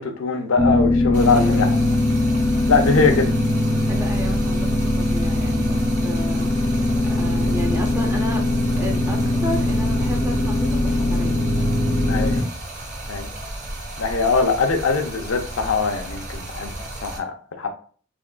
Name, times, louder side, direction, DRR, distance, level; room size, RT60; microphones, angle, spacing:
voice 1, 0.0-1.7 2.7-3.3 12.1-12.4 13.1-13.3 14.0-16.7 17.0-17.7, left 4 dB, 85° left, 0.6 m, -22 dB
sound 1, 0.6-12.4, left 1 dB, 40° left, 0.6 m, -21 dB
Stream, 1.1-17.2, right 1 dB, 35° right, 0.8 m, -34 dB
voice 2, 1.2-1.7 3.9-6.8 7.1-8.4 8.7-11.3, equal, 10° right, 0.4 m, -32 dB
3.6 x 3.4 x 2.2 m
head